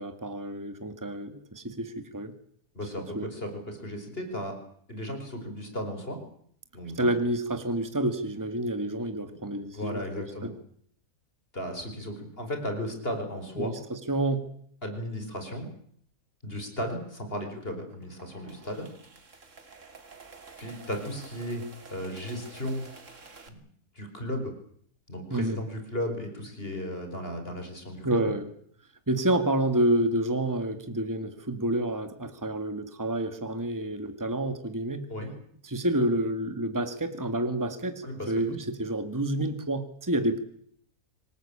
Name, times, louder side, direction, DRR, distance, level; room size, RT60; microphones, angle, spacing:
voice 1, 0.0-2.3 3.1-3.3 7.0-10.5 13.6-14.5 25.3-25.6 28.0-28.5 29.1-35.0 35.6-40.4, right 1 dB, 10° right, 9 dB, 1.9 m, -29 dB
voice 2, 2.7-4.6 4.9-6.2 6.7-7.1 9.3-9.4 9.7-10.5 11.5-13.7 14.8-15.7 16.4-18.9 20.6-21.6 21.9-22.9 23.5-23.6 24.0-24.5 25.1-28.3 35.1-35.3 38.0-38.3, equal, 35° left, 5 dB, 5.2 m, -35 dB
sound 1, 17.9-23.5, right 4 dB, 55° right, 2.8 m, -50 dB
26.5 x 19.0 x 8.7 m, 0.64 s
omnidirectional pair, 1.6 m